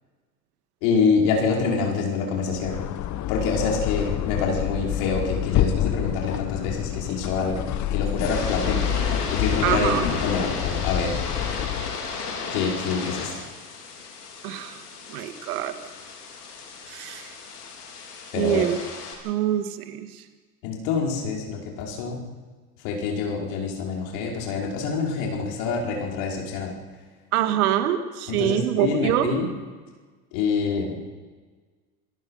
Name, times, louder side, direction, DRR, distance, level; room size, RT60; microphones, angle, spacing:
voice 1, 0.8-2.8 3.3-7.6 7.9-8.9 9.3-9.9 10.2-11.2 12.5-13.5 18.3-18.6 20.6-22.2 22.8-26.8 28.3-29.5 30.3-31.0, left 5 dB, 60° left, 0 dB, 5.3 m, -26 dB
sound 1, 2.4-12.0, left 11 dB, 40° left, 1.2 m, -28 dB
sound 2, 8.0-19.1, left 5 dB, 90° left, 4.7 m, -33 dB
voice 2, 9.6-10.2 14.4-14.8 15.1-15.7 16.9-17.3 18.3-18.8 19.2-20.2 27.3-29.4, right 11 dB, 70° right, 9 dB, 2.1 m, -25 dB
27.0 x 17.5 x 5.7 m, 1.4 s
hypercardioid pair, 95°, 46 cm